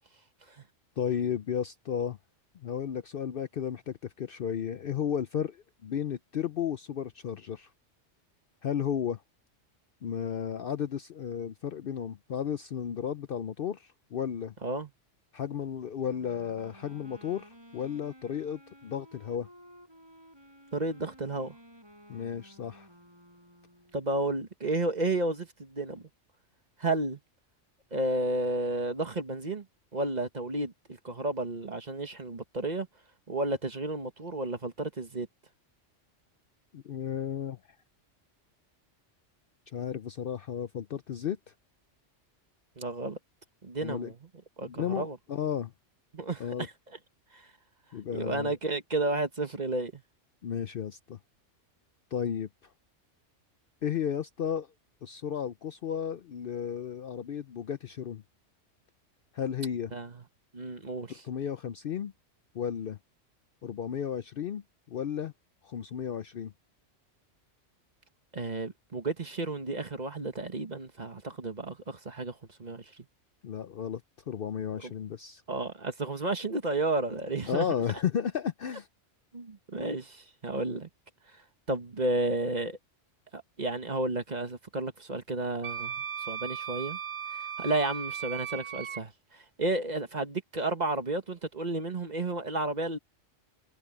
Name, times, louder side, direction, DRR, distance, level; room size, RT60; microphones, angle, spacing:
voice 1, 1.0-2.2 2.5-7.7 8.6-9.2 10.0-14.5 15.3-19.5 22.1-22.9 36.7-37.6 39.7-41.4 43.8-44.1 44.7-45.7 46.4-46.7 47.9-48.5 50.4-51.2 52.1-52.5 53.8-54.7 55.0-58.2 59.3-59.9 61.1-62.1 62.5-63.0 63.6-64.6 64.9-65.3 65.6-66.5 73.4-74.0 74.3-75.4 77.5-78.9, left 8 dB, 55° left, 0.7 m, -33 dB
Wind instrument woodwind instrument, 16.0-24.1, equal, 20° right, 5.8 m, -55 dB
voice 2, 20.7-21.6 23.9-26.0 26.8-27.2 27.9-29.6 29.9-32.9 33.3-35.3 42.8-43.2 43.6-44.2 44.6-45.2 46.1-46.7 47.3-47.5 48.1-50.0 59.9-60.2 60.5-61.2 68.3-73.0 74.8-74.9 75.5-77.7 79.3-80.9 81.3-81.4 81.7-82.8 83.3-87.0 87.3-93.0, right 2 dB, 35° right, 1.5 m, -32 dB
Wind instrument woodwind instrument 2, 85.6-89.0, right 8 dB, 65° right, 1.1 m, -37 dB
omnidirectional pair, 1.3 m